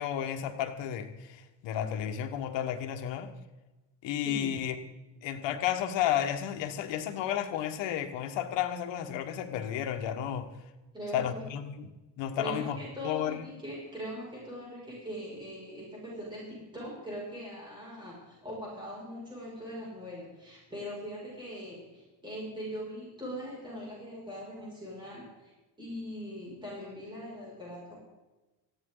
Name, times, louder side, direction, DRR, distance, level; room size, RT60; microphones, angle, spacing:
voice 1, 0.0-3.3 4.0-4.8 5.2-10.5 11.1-12.8 13.0-13.5, left 10 dB, 90° left, 7 dB, 1.6 m, -32 dB
voice 2, 10.9-11.4 12.3-25.5 25.8-28.0, equal, 10° right, -5 dB, 6.2 m, -41 dB
19.5 x 15.0 x 3.9 m, 1.1 s
cardioid pair, 170°, 42 cm